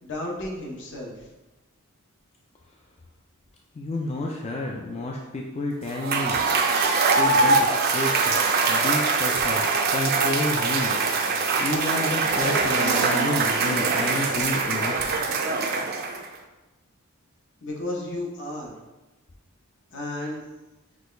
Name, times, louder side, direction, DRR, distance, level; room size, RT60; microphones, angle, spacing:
voice 1, 0.0-1.3 17.6-18.8 19.9-20.4, left 1 dB, 60° left, -1 dB, 0.9 m, -33 dB
voice 2, 3.8-6.4 7.2-8.4 8.7-11.0 11.6-15.1, left 2 dB, 30° left, -1 dB, 0.3 m, -30 dB
Cheering / Applause / Crowd, 5.9-16.3, right 4 dB, 45° right, 0.4 m, -23 dB
5.9 x 2.3 x 3.2 m, 1.1 s
head